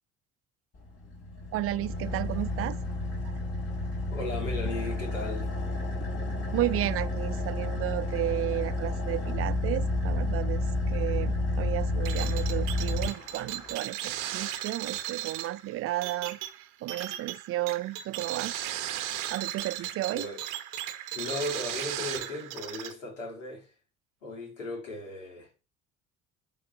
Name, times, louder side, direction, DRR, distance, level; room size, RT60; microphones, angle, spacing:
Car / Idling, 0.8-13.7, left 2 dB, 40° left, 2.5 m, -31 dB
voice 1, 1.5-2.8 3.3-3.4 6.5-18.5 19.3-20.3, right 15 dB, 40° right, 0.4 m, -33 dB
voice 2, 4.1-5.5 20.1-20.4 21.1-23.7 24.2-25.5, left 2 dB, 80° left, 2.6 m, -36 dB
sound 1, 12.0-22.9, right 12 dB, 55° right, 1.1 m, -36 dB
10.0 x 3.6 x 2.6 m
figure-of-eight pair, 60°, 38 cm